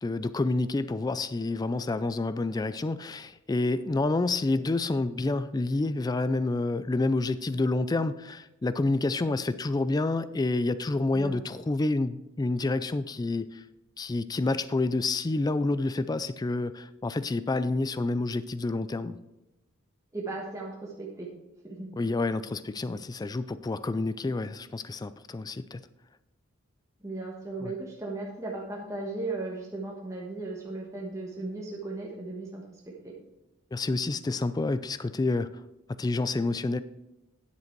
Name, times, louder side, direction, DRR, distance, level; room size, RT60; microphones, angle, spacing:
voice 1, 0.0-13.6 14.0-19.2 21.9-25.8 27.6-27.7 33.7-35.5 36.0-36.8, left 2 dB, 20° left, 14 dB, 0.3 m, -28 dB
voice 2, 20.1-21.3 21.6-21.9 27.0-33.1, right 2 dB, 15° right, -3 dB, 1.4 m, -36 dB
9.8 x 8.0 x 4.5 m, 0.99 s
head